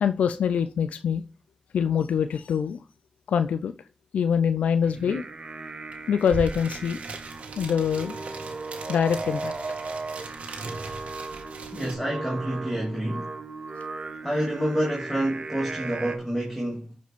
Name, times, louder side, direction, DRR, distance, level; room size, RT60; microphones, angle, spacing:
voice 1, 0.0-1.2 1.7-2.8 3.3-3.7 4.1-5.2 6.1-7.0 7.6-8.2 8.9-9.5, left 7 dB, 90° left, 0.4 m, -24 dB
Singing, 4.8-16.2, right 3 dB, 45° right, 1.3 m, -37 dB
sound 1, 5.9-6.0 6.2-11.9, right 3 dB, 75° right, 1.6 m, -39 dB
voice 2, 11.7-13.3 14.2-17.0, right 1 dB, 5° left, 2.5 m, -28 dB
14.5 x 5.1 x 3.6 m
cardioid pair, 55°, 2 cm